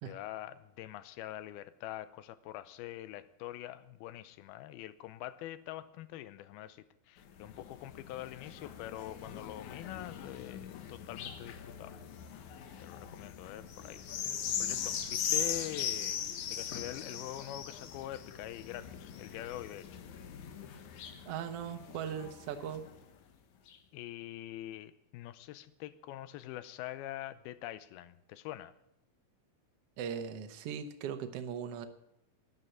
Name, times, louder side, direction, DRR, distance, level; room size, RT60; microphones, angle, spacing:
voice 1, 0.0-12.0 12.3-14.0 14.3-20.0 23.9-28.7, left 14 dB, 90° left, 15 dB, 2.7 m, -44 dB
sound 1, 7.2-23.0 23.7-23.8, left 8 dB, 65° left, 2.3 m, -40 dB
voice 2, 21.3-22.9 30.0-31.9, right 8 dB, 70° right, 7 dB, 1.4 m, -39 dB
12.5 x 9.7 x 9.2 m, 0.83 s
omnidirectional pair, 4.3 m